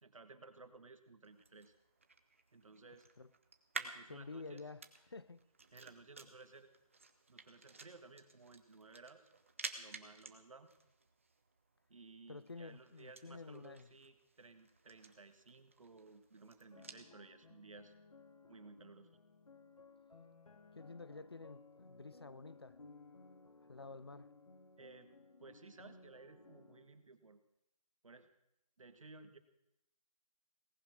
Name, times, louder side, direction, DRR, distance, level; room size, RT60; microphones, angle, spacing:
voice 1, 0.0-1.7 2.5-3.1 3.7-4.6 5.7-6.7 7.3-9.3 9.8-10.7 11.9-17.9 18.5-19.1 24.8-25.1 25.4-27.4 28.0-28.3 28.8-29.4, right 3 dB, 60° right, 1.7 m, -57 dB
sound 1, 1.2-17.1, right 4 dB, 20° right, 0.7 m, -53 dB
voice 2, 4.1-5.4 12.3-13.9 20.7-22.8 23.7-24.3, left 3 dB, 40° left, 0.5 m, -50 dB
sound 2, 16.7-27.0, left 3 dB, 70° left, 2.3 m, -60 dB
18.0 x 10.5 x 6.4 m
figure-of-eight pair, 175°, 19 cm